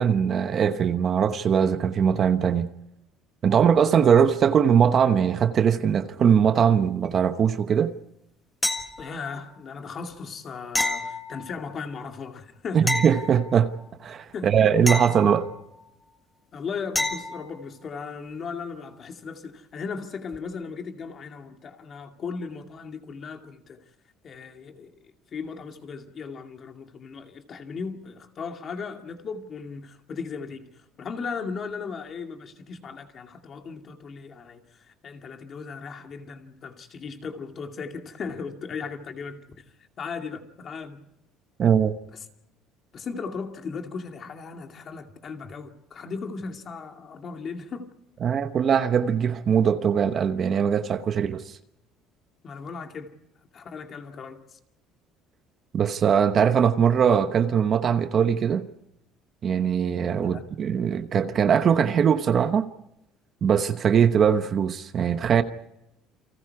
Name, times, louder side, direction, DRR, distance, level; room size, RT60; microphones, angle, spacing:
voice 1, 0.0-2.7 3.4-7.9 12.7-13.7 14.0-15.5 41.6-41.9 48.2-51.6 55.7-58.7 59.4-62.7 63.4-65.4, right 7 dB, 35° right, 1.0 m, -21 dB
sound 1, 8.6-9.4 10.7-11.8 12.9-13.9 14.9-15.9 17.0-17.6 20.3-20.4, left 2 dB, 10° left, 1.5 m, -30 dB
voice 2, 9.0-13.0 14.3-14.5 16.5-23.8 24.2-24.9 25.3-30.7 31.0-39.6 40.0-41.0 42.9-47.9 52.4-53.1 53.5-54.6 60.2-60.4, left 5 dB, 30° left, 2.3 m, -37 dB
29.5 x 24.5 x 4.8 m
cardioid pair, 165°, 0 cm